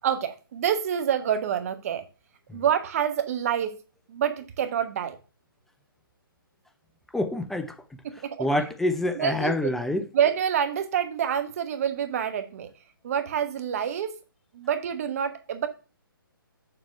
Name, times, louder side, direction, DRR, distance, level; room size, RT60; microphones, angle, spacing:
voice 1, 0.0-2.0 2.5-3.8 4.1-5.2 8.0-8.5 8.8-9.7 10.1-12.7 13.0-14.2 14.5-15.7, right 9 dB, 40° right, 1.1 m, -27 dB
voice 2, 7.1-7.7 8.4-10.1, left 1 dB, ahead, 0.4 m, -26 dB
6.9 x 6.8 x 3.3 m
figure-of-eight pair, 135°, 12 cm